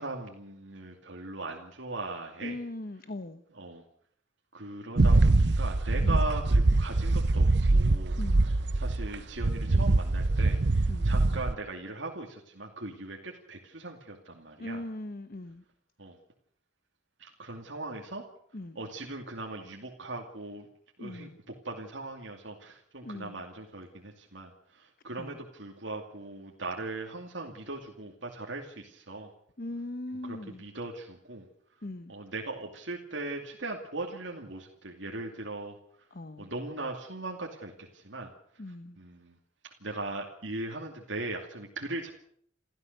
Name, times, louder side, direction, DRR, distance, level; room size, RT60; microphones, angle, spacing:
voice 1, 0.0-2.6 3.5-3.8 4.5-14.8 16.0-16.2 17.2-18.2 18.7-20.7 21.0-29.3 30.2-31.5 32.1-35.8 36.4-38.3 39.0-39.4 39.8-42.1, right 2 dB, 80° right, 0 dB, 2.6 m, -39 dB
voice 2, 2.4-3.4 6.0-6.2 8.2-8.5 10.9-11.1 14.6-15.6 18.5-18.8 21.0-21.4 23.0-23.4 25.2-25.4 29.6-30.6 31.8-32.1 36.1-36.5 38.6-39.0, left 1 dB, 50° left, 11 dB, 0.9 m, -40 dB
sound 1, 5.0-9.2 9.4-11.6, right 2 dB, 60° right, 0.8 m, -24 dB
28.5 x 14.0 x 6.7 m, 0.64 s
head